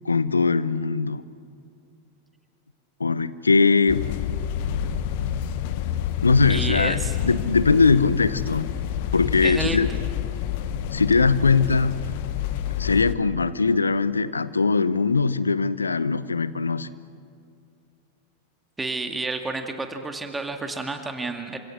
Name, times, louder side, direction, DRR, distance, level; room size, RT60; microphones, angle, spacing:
voice 1, 0.0-1.2 3.0-4.1 6.2-8.7 9.1-9.9 10.9-12.1 12.8-16.9, left 4 dB, 75° left, 16 dB, 0.9 m, -21 dB
sound 1, 3.9-13.1, left 10 dB, 50° left, 1.3 m, -28 dB
voice 2, 6.5-7.2 9.4-9.8 18.8-21.6, right 3 dB, 10° right, 5 dB, 2.1 m, -30 dB
28.0 x 26.0 x 6.3 m, 2.4 s
figure-of-eight pair, 90°, 0 cm